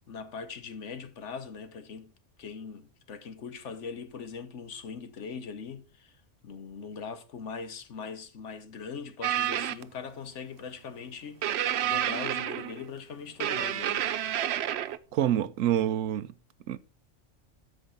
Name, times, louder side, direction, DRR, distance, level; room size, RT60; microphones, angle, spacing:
voice 1, 0.1-2.1 2.4-6.2 6.4-14.1, left 5 dB, 70° left, 1.3 m, -41 dB
sound 1, 9.2-9.8 11.4-12.9 13.4-15.0, right 11 dB, 65° right, 0.8 m, -29 dB
voice 2, 15.1-16.3 16.7-16.8, right 11 dB, 90° right, 1.0 m, -27 dB
13.5 x 5.3 x 3.8 m
omnidirectional pair, 1.3 m